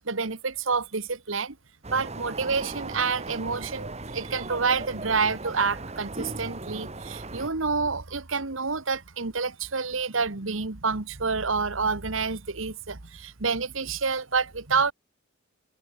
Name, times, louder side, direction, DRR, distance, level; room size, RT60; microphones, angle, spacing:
voice 1, 0.0-1.6 1.9-14.9, right 4 dB, 65° right, 1.5 m, -28 dB
sound 1, 1.8-7.5, right 2 dB, 30° right, 2.3 m, -37 dB
open air
head